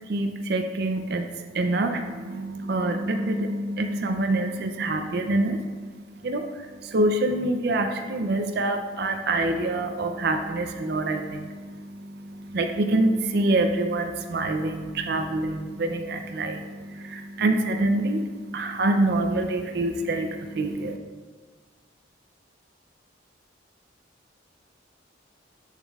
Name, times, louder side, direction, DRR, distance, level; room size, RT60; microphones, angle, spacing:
voice 1, 0.1-1.3 1.5-21.0, right 2 dB, 55° right, 5 dB, 0.4 m, -26 dB
7.3 x 7.1 x 2.3 m, 1.5 s
head